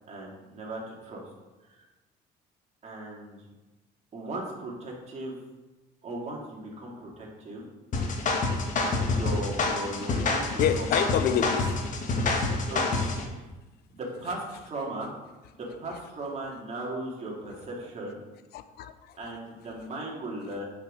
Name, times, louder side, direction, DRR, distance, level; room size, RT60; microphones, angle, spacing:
voice 1, 0.1-1.2 2.8-3.5 4.1-5.4 6.0-7.6 9.1-10.5 10.8-10.9 12.6-13.4 13.9-15.1 15.5-18.2 19.2-20.6, right 2 dB, 40° right, 2.4 m, -37 dB
sound 1, 7.9-13.2, left 3 dB, 50° left, 1.3 m, -27 dB
voice 2, 10.6-11.9 18.5-19.3, left 9 dB, 70° left, 0.6 m, -28 dB
6.6 x 5.8 x 5.0 m
cardioid pair, 110°, 17 cm